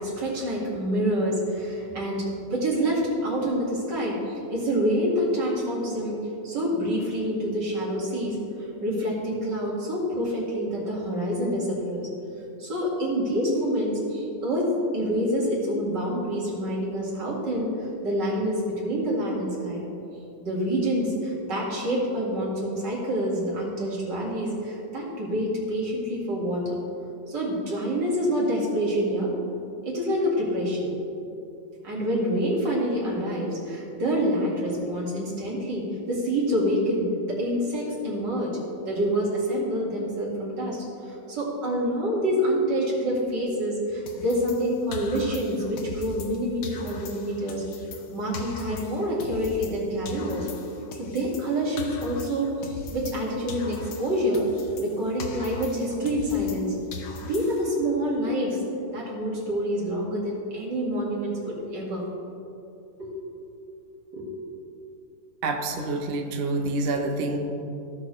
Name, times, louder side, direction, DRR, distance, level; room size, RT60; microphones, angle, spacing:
voice 1, 0.0-8.4 8.8-12.1 12.6-17.7 18.0-19.8 20.4-26.8 27.3-29.3 29.8-30.9 31.8-38.5 38.8-47.6 48.1-50.5 51.0-54.5 54.8-56.7 57.2-58.6 58.9-62.0 63.0-63.1 64.1-64.3, equal, 70° right, -5 dB, 2.8 m, -27 dB
sound 1, 44.1-46.4 46.6-49.8 50.0-53.2 53.5-56.6 56.9-57.8, left 4 dB, 70° left, 1.4 m, -39 dB
voice 2, 65.4-67.4, right 2 dB, 50° right, 3 dB, 0.7 m, -27 dB
16.0 x 6.4 x 3.2 m, 2.8 s
omnidirectional pair, 2.0 m